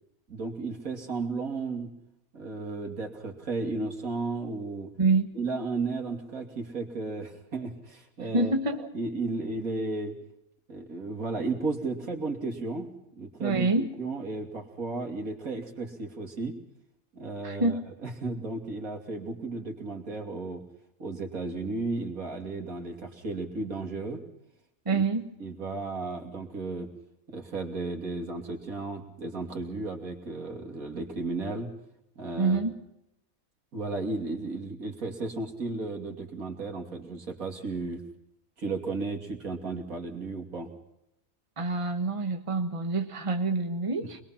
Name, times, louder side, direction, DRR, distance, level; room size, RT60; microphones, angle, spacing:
voice 1, 0.3-1.9 2.3-4.9 5.3-8.5 8.9-10.1 10.7-13.7 14.0-16.5 17.1-20.6 21.0-24.2 24.9-25.0 25.4-26.9 27.3-31.7 32.2-32.6 33.7-38.0 38.6-40.7 44.0-44.1, right 3 dB, 80° right, 3 dB, 3.1 m, -34 dB
voice 2, 5.0-5.3 8.2-8.9 13.4-13.9 17.4-17.9 24.8-25.3 32.4-32.7 41.6-44.2, right 3 dB, 25° right, 5 dB, 1.5 m, -27 dB
24.5 x 21.0 x 5.9 m, 0.82 s
omnidirectional pair, 1.5 m